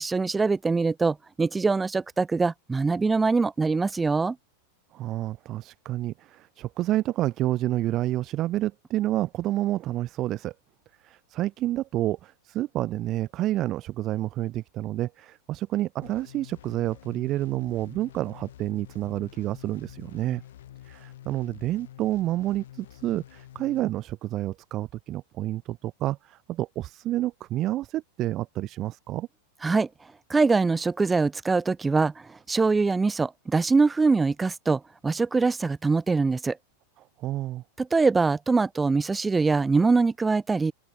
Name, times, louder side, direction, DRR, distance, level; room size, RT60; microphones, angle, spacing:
voice 1, 0.0-4.4 29.6-29.9 30.3-36.6 37.8-40.7, right 4 dB, 10° right, 2.1 m, -23 dB
voice 2, 4.9-10.5 11.0-20.4 20.9-29.3 37.2-37.6, right 14 dB, 35° right, 4.1 m, -29 dB
sound 1, 16.0-23.8, left 12 dB, 60° left, 4.5 m, -47 dB
open air
figure-of-eight pair, 90°, 0 cm